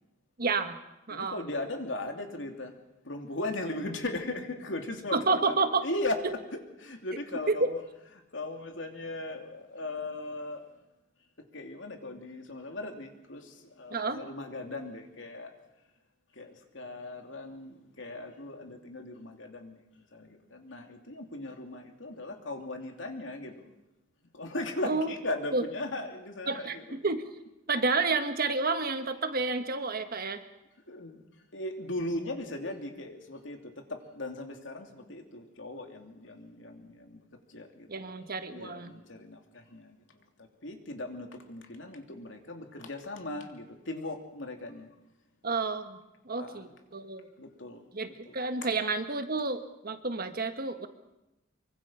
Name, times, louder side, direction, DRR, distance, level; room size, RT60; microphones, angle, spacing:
voice 1, 0.4-0.8 1.1-1.4 5.1-5.9 7.5-7.7 13.9-14.2 24.8-25.1 25.5-25.6 26.5-27.3 27.7-30.4 37.9-39.0 45.4-46.0 46.2-47.3 47.9-50.9, right 3 dB, 50° right, 8 dB, 1.5 m, -30 dB
voice 2, 1.1-2.8 3.0-6.2 6.8-7.8 8.3-10.7 11.4-15.5 16.3-23.7 24.3-27.0 30.8-31.2 31.5-38.1 38.5-40.0 40.4-44.9 46.3-46.7 47.4-47.8 48.2-48.7, left 2 dB, 75° left, 4 dB, 2.9 m, -38 dB
24.5 x 24.0 x 5.7 m, 0.95 s
head